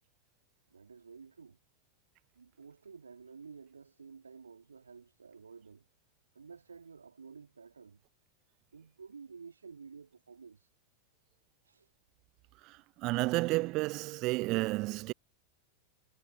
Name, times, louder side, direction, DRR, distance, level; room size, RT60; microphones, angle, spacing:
voice 1, 0.7-1.6 2.3-5.9 6.3-8.0 8.7-10.7 11.6-11.9, right 5 dB, 75° right, 2.6 m, -52 dB
voice 2, 12.6-15.1, right 21 dB, 40° right, 0.3 m, -31 dB
figure-of-eight pair, 90°, 0 cm